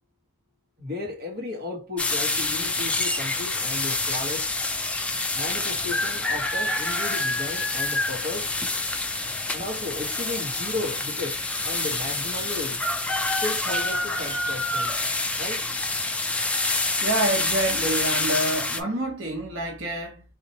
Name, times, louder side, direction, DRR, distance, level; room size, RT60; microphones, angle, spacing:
voice 1, 0.8-4.5 5.3-8.5 9.5-12.8 13.3-15.0 15.4-15.7, left 2 dB, 45° right, 1.2 m, -34 dB
sound 1, 2.0-18.8, left 2 dB, 5° left, 0.3 m, -27 dB
voice 2, 17.0-20.2, right 1 dB, 65° right, 1.0 m, -27 dB
4.2 x 2.5 x 2.8 m
head